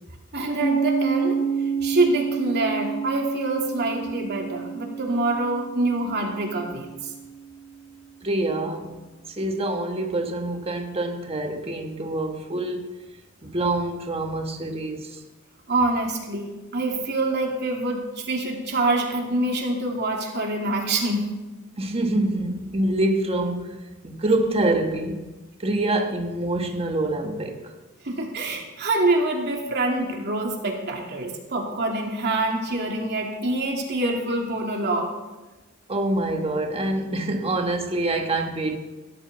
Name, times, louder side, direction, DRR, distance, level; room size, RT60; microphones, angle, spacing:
voice 1, 0.3-1.4 1.8-7.1 15.7-21.4 28.0-35.1, right 2 dB, 55° right, 2.8 m, -25 dB
Piano, 0.6-7.8, right 6 dB, 60° left, 1.2 m, -29 dB
voice 2, 8.2-9.0 9.4-12.9 13.4-15.2 21.8-23.8 24.0-25.3 25.6-27.6 35.9-38.8, right 2 dB, 30° right, 1.4 m, -26 dB
18.0 x 12.5 x 4.3 m
head